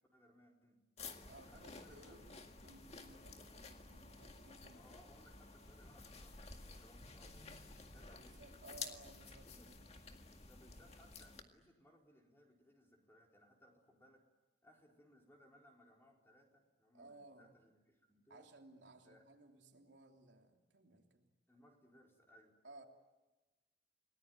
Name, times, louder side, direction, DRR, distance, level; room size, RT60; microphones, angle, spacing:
voice 1, 0.1-0.8 1.4-2.2 2.6-2.8 4.7-8.8 9.4-9.7 10.4-14.2 14.6-18.5 19.0-19.3 21.5-22.5, equal, 15° left, 0 dB, 4.6 m, -66 dB
sound 1, 1.0-11.4, left 4 dB, 35° left, 2.0 m, -53 dB
voice 2, 1.2-2.3 2.6-4.9 8.2-9.9 16.9-17.5 18.3-21.3 22.6-22.8, right 2 dB, 80° right, 2 dB, 3.2 m, -60 dB
29.0 x 19.5 x 9.6 m, 1.1 s
head